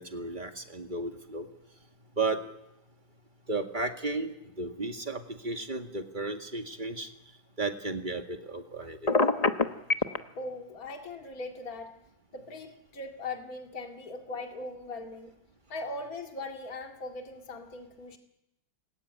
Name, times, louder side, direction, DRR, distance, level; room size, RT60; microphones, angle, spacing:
voice 1, 0.0-1.5 2.2-2.4 3.5-7.1 7.6-9.1, right 3 dB, 25° right, 5 dB, 2.0 m, -34 dB
Telephone, 9.1-10.2, left 3 dB, 25° left, 1.0 m, -23 dB
voice 2, 10.4-12.0 12.3-15.3 15.7-18.2, left 2 dB, 55° left, 3 dB, 2.6 m, -40 dB
27.0 x 21.5 x 9.9 m, 0.90 s
omnidirectional pair, 1.9 m